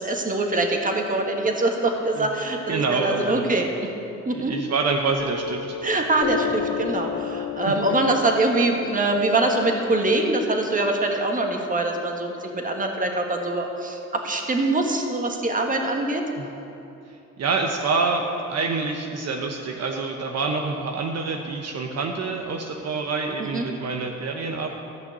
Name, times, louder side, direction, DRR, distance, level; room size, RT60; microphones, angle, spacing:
voice 1, 0.0-3.7 4.2-4.5 5.8-16.2 23.5-23.7, right 2 dB, 25° right, 2 dB, 1.5 m, -23 dB
voice 2, 2.7-3.5 4.3-5.8 7.6-7.7 16.4-16.5 17.4-24.7, right 4 dB, 60° right, 2 dB, 1.0 m, -26 dB
Piano, 5.2-12.3, left 7 dB, 40° left, 1.0 m, -33 dB
13.5 x 5.8 x 8.1 m, 2.8 s
cardioid pair, 90°, 30 cm